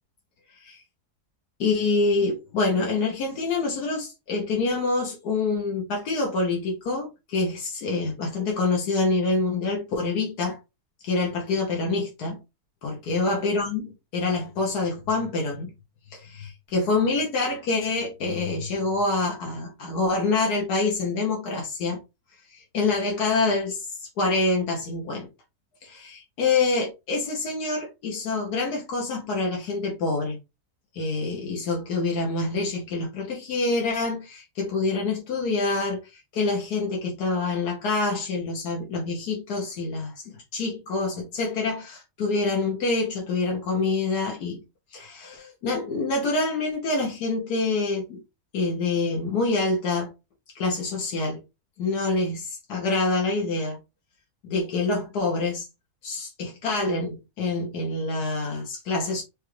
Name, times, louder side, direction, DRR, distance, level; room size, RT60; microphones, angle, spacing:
voice 1, 1.6-10.6 11.0-12.4 12.8-15.7 16.1-22.0 22.5-25.3 25.8-30.4 30.9-44.6 44.9-48.2 48.5-50.1 50.5-51.4 51.8-53.8 54.4-55.7 56.0-59.2, left 3 dB, 80° left, 1.5 m, -26 dB
5.1 x 2.4 x 3.1 m
omnidirectional pair, 1.7 m